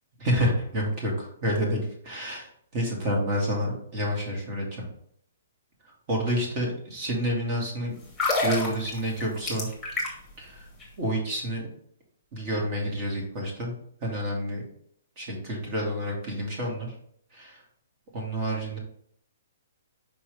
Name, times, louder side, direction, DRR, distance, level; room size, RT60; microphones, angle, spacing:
voice 1, 0.2-4.9 6.1-7.9 8.4-9.7 10.4-10.7 11.0-11.7 12.3-13.7 14.0-14.6 15.2-16.9 17.3-17.6 18.1-18.8, equal, 30° right, -1 dB, 2.0 m, -29 dB
sound 1, 8.0-10.4 10.7-10.8, left 2 dB, ahead, 1.6 m, -28 dB
5.7 x 5.2 x 3.4 m, 0.66 s
hypercardioid pair, 170°, 0 cm